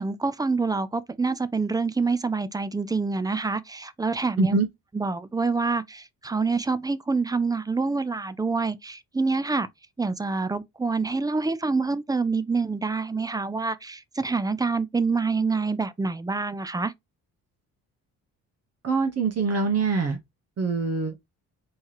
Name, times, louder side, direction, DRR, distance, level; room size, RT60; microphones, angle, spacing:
voice 1, 0.0-4.6 4.9-9.7 10.0-16.9, right 4 dB, 10° right, 0.3 m, -26 dB
voice 2, 18.8-20.2 20.6-21.1, right 4 dB, 45° right, 1.0 m, -24 dB
4.5 x 3.0 x 2.9 m
cardioid pair, 100°, 35 cm